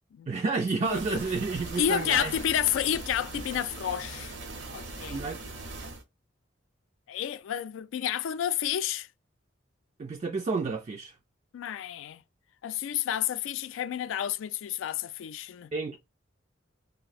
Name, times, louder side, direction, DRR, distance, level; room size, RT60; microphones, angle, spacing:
voice 1, 0.3-2.3 5.1-5.4 10.0-11.1 15.7-16.0, right 4 dB, 35° right, 0.3 m, -30 dB
voice 2, 0.8-1.2 1.8-4.3 4.7-5.2 7.1-9.1 11.5-12.2 12.6-15.7, left 10 dB, 85° left, 0.3 m, -30 dB
sound 1, 0.8-6.0, right 2 dB, 70° right, 0.7 m, -40 dB
2.7 x 2.1 x 4.0 m
head